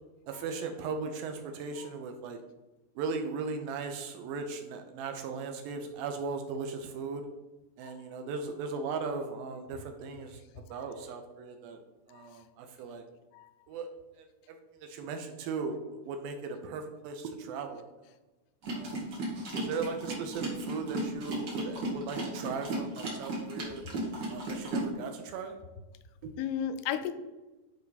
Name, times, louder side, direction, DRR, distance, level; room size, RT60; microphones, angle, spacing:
voice 1, 0.3-2.4 3.0-7.3 7.8-10.4 10.7-11.8 12.1-13.0 13.7-13.9 14.2-17.8 18.7-19.0 19.6-23.9 24.3-25.5 26.2-26.3, right 4 dB, 80° right, 5 dB, 2.2 m, -38 dB
sound 1, 18.6-24.9, right 2 dB, 50° right, 1.2 m, -35 dB
voice 2, 26.4-27.1, left 9 dB, 85° left, 10 dB, 2.5 m, -33 dB
10.5 x 3.5 x 4.0 m, 1.1 s
omnidirectional pair, 4.5 m